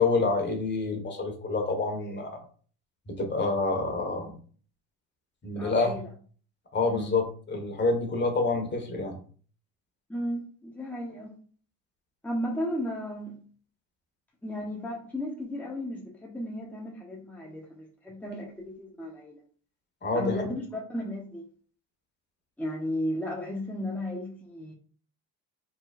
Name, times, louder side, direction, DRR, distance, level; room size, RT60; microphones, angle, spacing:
voice 1, 0.0-2.4 3.1-4.3 5.4-6.0 6.7-9.1 20.0-20.4, left 3 dB, 30° left, 1.5 m, -27 dB
voice 2, 5.6-6.0 6.8-7.1 10.1-11.3 12.2-13.4 14.4-19.4 20.1-21.5 22.6-24.7, left 1 dB, 5° left, 1.1 m, -34 dB
4.0 x 3.9 x 2.5 m
supercardioid pair, 85°, 34 cm